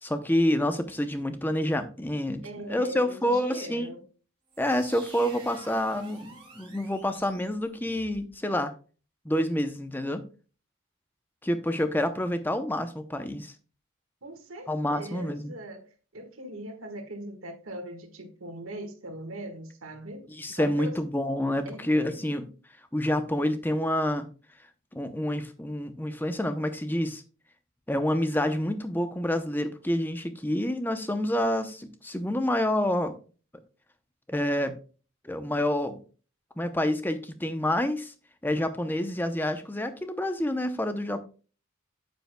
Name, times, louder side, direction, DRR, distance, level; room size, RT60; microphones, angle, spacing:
voice 1, 0.0-3.9 4.6-8.7 9.2-10.2 11.4-13.5 14.7-15.5 20.3-22.4 22.9-24.3 24.9-27.2 27.9-33.2 34.3-34.8 35.2-36.0 36.6-38.1 38.4-41.2, left 1 dB, 10° left, 0.6 m, -28 dB
voice 2, 2.4-4.0 14.2-21.0 21.6-22.2, right 1 dB, 75° right, 1.6 m, -40 dB
sound 1, 4.5-8.3, right 3 dB, 25° right, 2.2 m, -49 dB
9.0 x 8.1 x 2.2 m
head